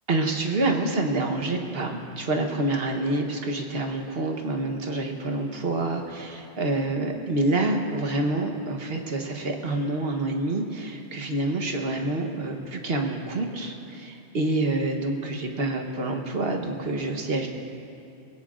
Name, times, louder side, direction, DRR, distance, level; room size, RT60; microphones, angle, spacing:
voice 1, 0.1-17.5, right 2 dB, 55° right, 3 dB, 1.3 m, -27 dB
20.5 x 17.5 x 2.5 m, 2.7 s
omnidirectional pair, 1.2 m